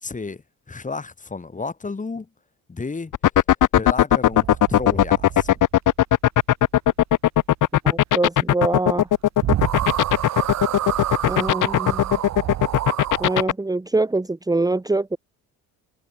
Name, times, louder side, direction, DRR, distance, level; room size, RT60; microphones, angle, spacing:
voice 1, 0.0-0.4 0.7-2.3 2.7-3.1 3.8-5.5, left 4 dB, 20° left, 3.1 m, -31 dB
sound 1, 3.1-13.5, left 12 dB, 60° left, 1.4 m, -17 dB
sound 2, 4.3-5.9 9.1-9.2 9.4-13.4, right 12 dB, 50° right, 0.8 m, -28 dB
voice 2, 7.8-9.1 11.3-12.2 13.2-15.2, right 2 dB, 10° right, 1.4 m, -24 dB
cardioid pair, 100°, 36 cm